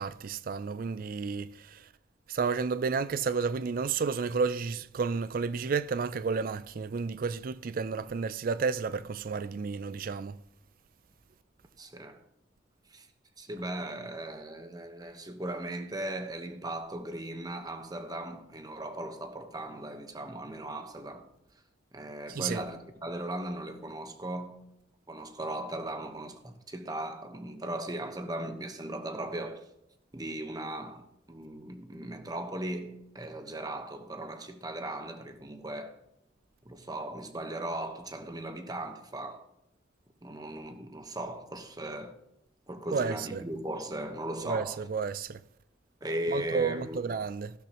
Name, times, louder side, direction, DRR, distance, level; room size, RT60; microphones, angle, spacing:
voice 1, 0.0-1.8 2.3-10.4 22.3-22.6 42.9-43.4 44.4-45.4 46.3-47.5, right 5 dB, 50° right, 0.4 m, -31 dB
voice 2, 11.8-12.2 12.9-13.1 13.4-21.3 21.9-24.6 25.1-29.6 30.1-36.0 36.6-39.5 40.2-42.2 42.7-44.9 46.0-47.3, right 1 dB, 20° right, 1.1 m, -38 dB
15.0 x 12.0 x 3.0 m
head